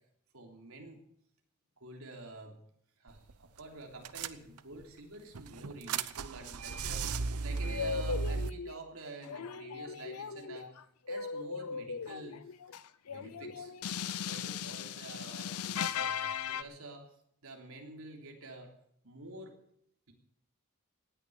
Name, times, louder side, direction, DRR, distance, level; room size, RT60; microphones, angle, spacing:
voice 1, 0.3-1.0 1.8-2.6 3.0-10.7 11.1-12.5 13.1-13.7 14.2-17.0 17.4-18.7 19.0-19.6 20.1-20.2, right 2 dB, 70° right, 2 dB, 3.3 m, -48 dB
sound 1, 3.1-3.3 3.6-3.7 4.1-4.8 5.3-8.5, right 4 dB, 90° right, 0.8 m, -36 dB
sound 2, 7.6-8.8 9.2-16.6, left 6 dB, 90° left, 0.7 m, -38 dB
18.0 x 9.8 x 6.9 m, 0.70 s
head